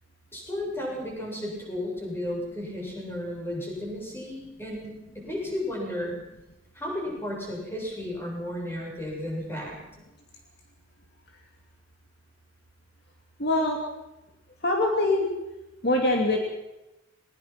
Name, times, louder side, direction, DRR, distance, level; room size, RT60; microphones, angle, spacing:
voice 1, 0.3-6.1 6.7-9.7, left 1 dB, 10° left, -2 dB, 7.6 m, -33 dB
voice 2, 13.4-13.8 14.6-15.3 15.8-16.4, left 2 dB, 55° left, 1 dB, 2.7 m, -23 dB
21.5 x 21.0 x 6.1 m, 0.96 s
head